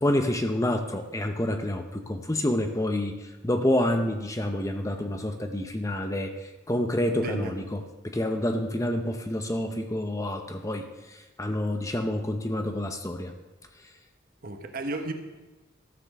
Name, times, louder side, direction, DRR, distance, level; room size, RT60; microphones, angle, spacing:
voice 1, 0.0-13.3, left 1 dB, 15° left, 6 dB, 0.7 m, -28 dB
voice 2, 7.1-7.5 14.4-15.1, right 2 dB, 45° right, 5 dB, 1.2 m, -33 dB
13.5 x 7.2 x 6.6 m, 1.1 s
head